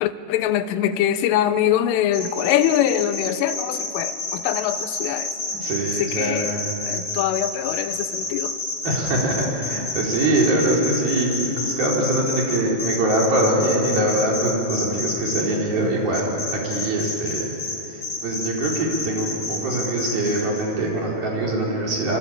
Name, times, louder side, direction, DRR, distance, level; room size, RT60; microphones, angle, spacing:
voice 1, 0.0-5.4 6.0-6.5 6.9-8.6, left 10 dB, 90° left, 11 dB, 3.5 m, -23 dB
sound 1, 2.1-15.4 16.1-17.8 18.0-20.6, left 3 dB, 30° left, 5.0 m, -28 dB
voice 2, 5.6-6.7 8.8-17.5 18.2-22.2, right 1 dB, 50° right, -2 dB, 5.6 m, -23 dB
26.0 x 25.0 x 8.8 m, 3.0 s
omnidirectional pair, 5.6 m